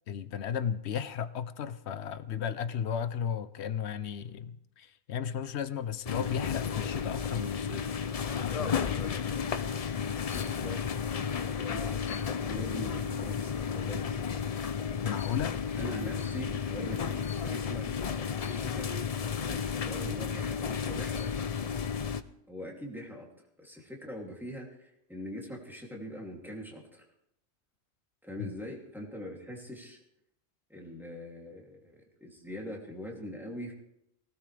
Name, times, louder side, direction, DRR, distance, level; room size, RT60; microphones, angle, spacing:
voice 1, 0.1-8.0 8.3-9.3 15.0-15.6 28.4-28.5, left 8 dB, 75° left, 14 dB, 1.0 m, -35 dB
sound 1, 6.1-22.2, left 6 dB, 45° left, 0.5 m, -33 dB
voice 2, 9.9-10.9 11.3-14.5 15.8-17.9 18.4-21.5 22.5-23.3 23.6-27.0 28.2-30.0 30.7-33.7, equal, ahead, -2 dB, 2.8 m, -43 dB
19.0 x 17.0 x 3.4 m, 0.80 s
omnidirectional pair, 1.1 m